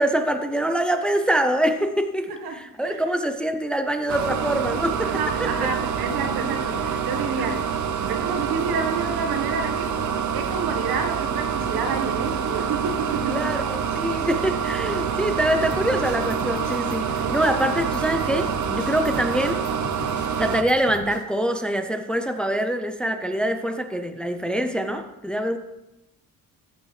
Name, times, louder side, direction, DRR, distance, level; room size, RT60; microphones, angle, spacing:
voice 1, 0.0-5.7 7.4-7.6 13.3-19.6 20.4-25.6, right 1 dB, 5° left, 7 dB, 0.5 m, -25 dB
sound 1, 4.1-20.6, right 7 dB, 55° right, 0.8 m, -26 dB
voice 2, 5.0-7.6 8.0-10.0 10.3-13.5 17.2-17.4, right 5 dB, 85° right, 4 dB, 1.5 m, -29 dB
sound 2, 15.7-21.2, left 3 dB, 55° left, 1.5 m, -40 dB
15.0 x 7.1 x 3.3 m, 0.96 s
cardioid pair, 125°, 35 cm